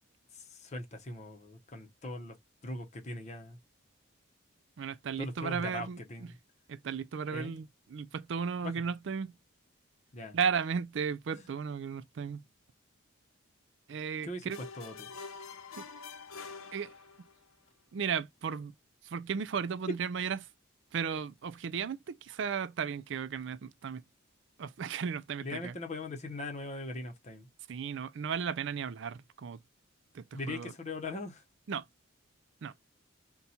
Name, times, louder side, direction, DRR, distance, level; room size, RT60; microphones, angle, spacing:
voice 1, 0.3-2.4 2.6-3.6 5.2-6.3 7.3-7.5 8.6-8.8 10.1-10.4 11.3-11.5 14.2-15.1 25.4-27.5 30.3-31.4, left 2 dB, 35° left, 0.7 m, -40 dB
voice 2, 4.8-6.0 6.7-9.3 10.3-12.4 13.9-14.6 15.8-15.9 16.7-16.9 17.9-18.7 19.0-20.4 20.9-24.0 24.6-25.8 27.7-29.6 30.1-30.7 31.7-31.8 32.6-32.7, right 6 dB, 60° right, 0.4 m, -35 dB
sound 1, 14.5-17.5, left 5 dB, 80° left, 0.8 m, -46 dB
4.1 x 2.2 x 4.2 m
head